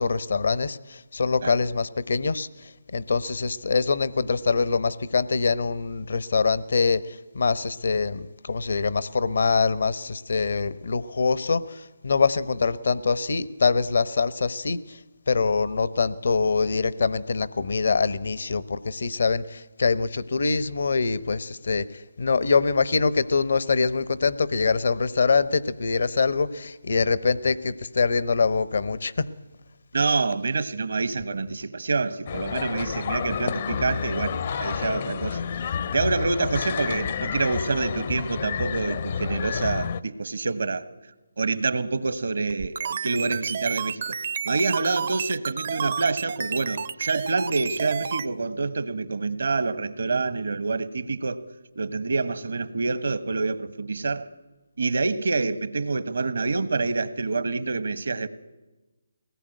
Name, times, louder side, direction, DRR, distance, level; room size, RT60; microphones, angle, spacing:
voice 1, 0.0-15.0 15.3-21.9 22.2-29.3, left 4 dB, 65° left, 16 dB, 1.0 m, -24 dB
voice 2, 29.9-35.4 35.9-40.9 41.4-51.4 51.7-54.3 54.8-58.3, right 3 dB, 70° right, 13 dB, 1.4 m, -27 dB
sound 1, 32.3-40.0, left 7 dB, 45° left, 0.7 m, -30 dB
sound 2, 42.5-48.3, right 7 dB, 50° right, 0.7 m, -31 dB
21.5 x 18.5 x 9.3 m, 1.1 s
figure-of-eight pair, 150°, 0 cm